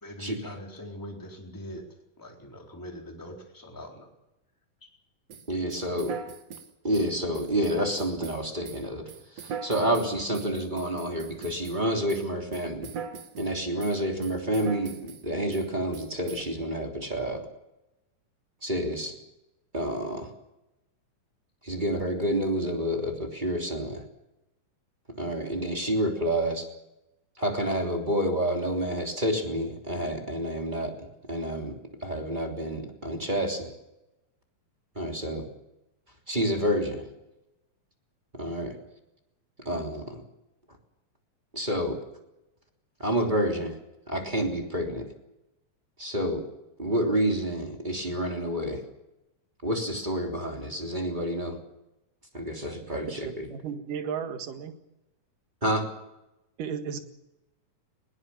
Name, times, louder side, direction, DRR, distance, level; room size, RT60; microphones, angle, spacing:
voice 1, 0.0-1.8 2.2-4.1, equal, 5° left, 0 dB, 3.8 m, -42 dB
sound 1, 5.3-11.8 12.1-13.5 13.8-15.2 15.5-15.7 15.9-16.4, right 6 dB, 55° right, 2.8 m, -41 dB
voice 2, 5.5-6.2 6.8-9.1 9.4-12.9 13.4-17.4 18.6-19.1 19.7-20.3 21.6-24.0 25.2-26.7 27.4-30.9 31.3-33.7 34.9-35.4 36.3-37.0 38.3-38.8 39.6-40.2 41.5-42.0 43.0-43.8 44.1-45.1 46.0-46.4 46.8-48.8 49.6-51.6 52.3-53.5 55.6-55.8, equal, 15° right, 2 dB, 3.0 m, -29 dB
voice 3, 53.1-54.8 56.6-57.0, right 7 dB, 75° right, 7 dB, 3.4 m, -34 dB
21.0 x 19.0 x 7.2 m, 0.92 s
omnidirectional pair, 3.9 m